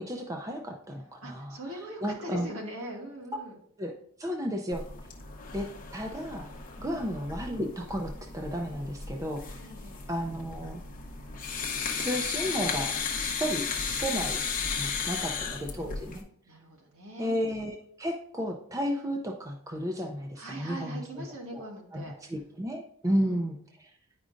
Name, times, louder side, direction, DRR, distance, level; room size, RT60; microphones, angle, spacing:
voice 1, 0.0-1.6 2.0-2.5 3.8-3.9 4.2-4.8 5.5-5.7 5.9-6.5 6.8-9.4 10.1-10.8 11.9-14.4 14.8-16.2 17.2-21.0 21.5-21.6 21.9-23.9, equal, 15° right, 3 dB, 0.4 m, -33 dB
voice 2, 1.2-3.6 6.8-7.0 9.6-10.0 14.8-15.4 16.4-17.4 20.4-22.2 23.0-23.4, right 1 dB, 70° right, -1 dB, 1.7 m, -42 dB
sound 1, 4.7-16.2, left 5 dB, 35° left, 0.8 m, -35 dB
9.5 x 5.0 x 2.5 m, 0.65 s
head